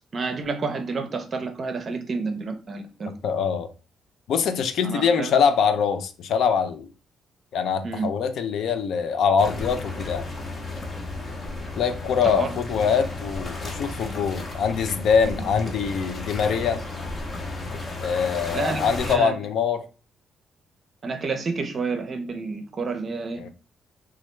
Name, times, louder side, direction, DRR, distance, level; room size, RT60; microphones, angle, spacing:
voice 1, 0.1-3.1 4.8-5.3 7.8-8.1 12.2-12.5 15.2-15.3 18.5-19.3 21.0-23.4, right 4 dB, 45° right, 0.5 m, -29 dB
voice 2, 3.2-3.7 4.3-6.9 7.5-10.2 11.8-16.8 18.0-19.8 23.4-23.5, left 6 dB, 70° left, 0.4 m, -23 dB
sound 1, 9.4-19.1, left 2 dB, 40° left, 0.8 m, -33 dB
3.0 x 2.3 x 3.1 m
cardioid pair, 90°, 0 cm